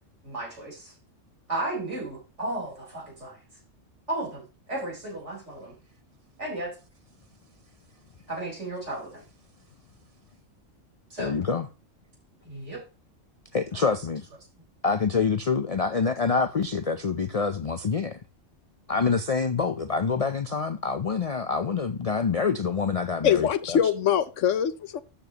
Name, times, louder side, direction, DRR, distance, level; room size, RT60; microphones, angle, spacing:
voice 1, 0.2-0.9 1.5-3.4 4.1-5.7 6.4-6.7 8.3-9.2 11.1-11.3 12.4-12.8 13.7-13.8, right 2 dB, 65° right, 4.7 m, -34 dB
voice 2, 11.2-11.7 13.5-14.2 14.8-18.2 18.9-23.8, left 5 dB, 45° left, 0.5 m, -26 dB
voice 3, 23.2-25.0, left 9 dB, 75° left, 1.0 m, -23 dB
12.5 x 6.9 x 2.9 m
omnidirectional pair, 1.3 m